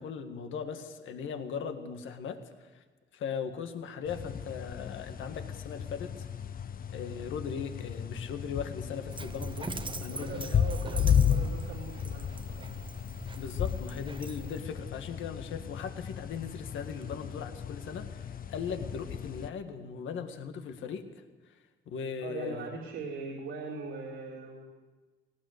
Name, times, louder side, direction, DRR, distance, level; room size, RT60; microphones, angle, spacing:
voice 1, 0.0-2.8 3.1-6.3 6.9-10.6 11.0-11.1 13.3-21.6 21.9-22.7, left 6 dB, 75° left, 6 dB, 1.9 m, -39 dB
sound 1, 4.0-19.5, left 8 dB, 45° left, 0.8 m, -34 dB
Dog, 9.1-14.6, right 3 dB, 25° right, 1.1 m, -42 dB
voice 2, 10.1-12.7 22.2-24.6, right 4 dB, 85° right, -4 dB, 3.5 m, -40 dB
20.0 x 18.0 x 8.1 m, 1.3 s
cardioid pair, 90°, 20 cm